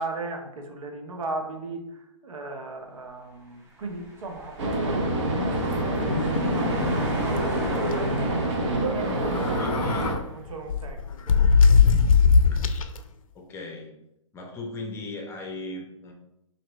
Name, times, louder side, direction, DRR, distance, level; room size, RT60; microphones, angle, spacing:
voice 1, 0.0-5.9 6.2-7.4 8.9-9.7 10.3-11.4, right 2 dB, 85° right, 3 dB, 0.9 m, -37 dB
sound 1, 3.7-10.4, right 1 dB, 15° right, 0.8 m, -39 dB
sound 2, 4.6-10.2, right 1 dB, 60° right, 0.9 m, -26 dB
sound 3, 6.0-7.0 7.3-7.4 7.7-7.9 9.1-10.2 10.7-13.0, left 5 dB, 85° left, 0.4 m, -20 dB
voice 2, 9.4-10.1 13.3-14.0 14.3-16.1, left 2 dB, 15° left, 2 dB, 0.6 m, -37 dB
4.3 x 2.8 x 3.0 m, 0.85 s
hypercardioid pair, 140°, 17 cm